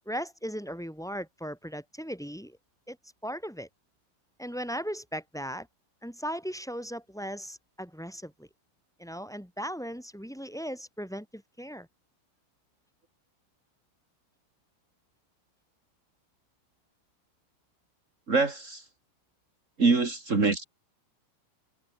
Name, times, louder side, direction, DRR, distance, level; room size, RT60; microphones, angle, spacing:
voice 1, 0.1-2.6 2.9-3.7 4.4-5.7 6.0-8.5 9.0-11.9, equal, ahead, 7.2 m, -37 dB
voice 2, 18.3-18.8 19.8-20.6, right 4 dB, 45° right, 0.9 m, -24 dB
omnidirectional pair, 5.7 m